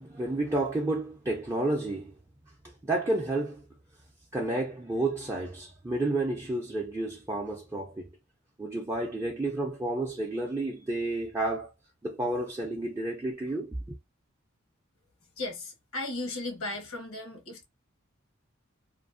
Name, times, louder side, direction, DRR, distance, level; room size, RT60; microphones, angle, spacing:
voice 1, 0.0-2.1 2.6-3.6 4.3-8.1 8.6-11.7 12.0-14.0, right 2 dB, 15° right, 0.4 m, -31 dB
voice 2, 15.4-17.6, left 2 dB, 80° left, 1.0 m, -36 dB
2.6 x 2.5 x 2.5 m
head